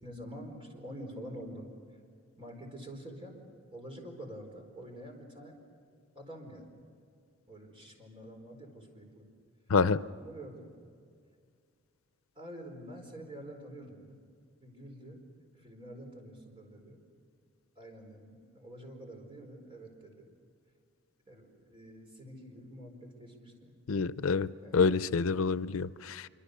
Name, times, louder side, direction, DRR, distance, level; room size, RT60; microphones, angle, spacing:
voice 1, 0.0-1.7 2.4-3.4 3.7-5.6 6.1-6.8 7.5-9.3 10.2-10.7 12.3-14.2 14.6-15.2 15.5-17.0 17.8-20.3 21.3-23.7 24.6-24.8, equal, 25° right, 2 dB, 4.6 m, -47 dB
voice 2, 23.9-26.3, left 4 dB, 90° left, 16 dB, 0.6 m, -27 dB
26.0 x 24.0 x 6.7 m, 2.2 s
head